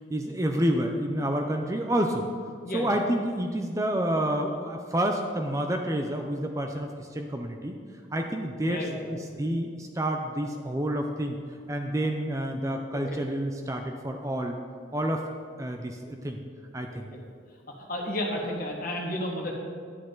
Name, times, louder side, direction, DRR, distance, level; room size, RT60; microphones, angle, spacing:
voice 1, 0.1-2.2 2.7-7.8 8.1-11.4 11.7-14.6 14.9-15.3 15.6-16.4 16.7-17.1, right 1 dB, 15° right, 4 dB, 0.5 m, -29 dB
voice 2, 2.6-3.0 8.6-9.2 12.9-13.2 16.9-17.2 17.9-19.5, left 1 dB, 50° left, 0 dB, 1.6 m, -33 dB
11.0 x 9.7 x 3.9 m, 2.1 s
head